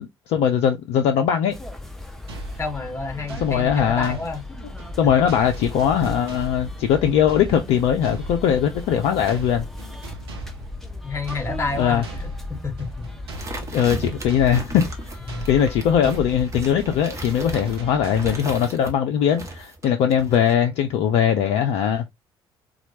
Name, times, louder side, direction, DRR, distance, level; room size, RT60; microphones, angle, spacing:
voice 1, 0.0-1.6 3.4-4.2 5.0-9.7 11.8-12.0 13.7-14.9 15.5-22.1, left 8 dB, 50° left, 0.4 m, -20 dB
sound 1, 1.5-18.4, left 2 dB, ahead, 0.7 m, -37 dB
sound 2, 2.3-18.7, right 2 dB, 75° right, 0.7 m, -39 dB
voice 2, 2.6-4.4 11.0-12.3 12.6-13.1 15.2-15.5 18.1-18.3, left 3 dB, 20° left, 1.0 m, -29 dB
sound 3, 13.3-18.9 19.3-20.6, right 2 dB, 20° right, 1.2 m, -36 dB
4.2 x 2.3 x 2.7 m
figure-of-eight pair, 55°, 14 cm